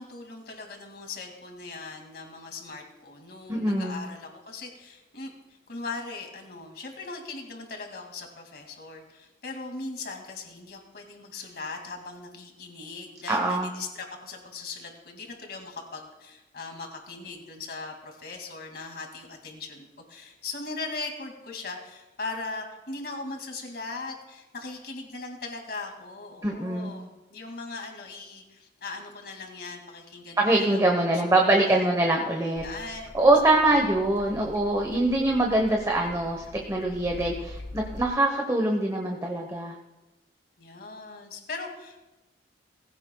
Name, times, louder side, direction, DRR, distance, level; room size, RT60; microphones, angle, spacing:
voice 1, 0.0-31.9 32.6-33.1 33.7-34.2 40.6-42.0, left 3 dB, 60° left, 3 dB, 2.4 m, -39 dB
voice 2, 3.5-4.0 13.3-13.7 26.4-26.9 30.4-32.6 33.1-39.7, right 2 dB, 20° right, 1 dB, 1.0 m, -23 dB
sound 1, 32.6-38.1, left 1 dB, 80° left, 1.5 m, -44 dB
19.5 x 16.0 x 2.3 m, 1.1 s
head